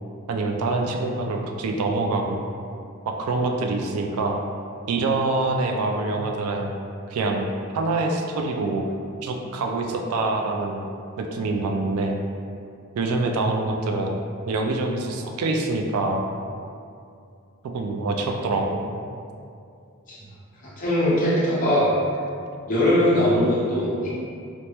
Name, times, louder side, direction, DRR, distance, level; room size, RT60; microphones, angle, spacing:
voice 1, 0.3-2.4 3.1-4.4 4.9-6.7 7.1-7.5 7.7-8.8 9.2-10.8 11.2-12.2 13.0-14.1 14.5-16.2 17.7-18.9, right 3 dB, 80° right, 3 dB, 0.3 m, -25 dB
voice 2, 20.8-21.9 22.7-24.1, left 1 dB, 40° left, -9 dB, 0.8 m, -20 dB
3.3 x 2.1 x 2.8 m, 2.4 s
head